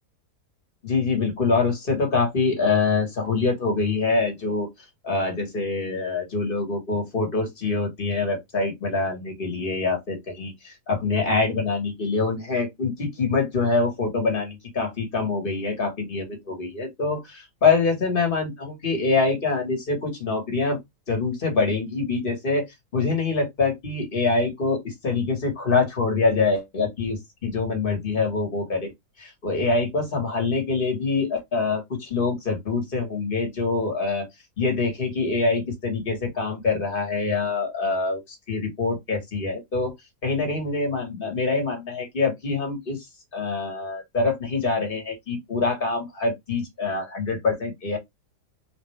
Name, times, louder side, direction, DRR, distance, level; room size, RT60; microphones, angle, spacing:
voice 1, 0.8-4.7 5.0-20.8 21.1-22.7 22.9-28.9 29.2-34.3 34.6-38.2 38.5-39.9 40.2-43.1 43.3-48.0, left 4 dB, 35° left, 1.5 m, -25 dB
3.8 x 2.5 x 3.2 m
omnidirectional pair, 1.8 m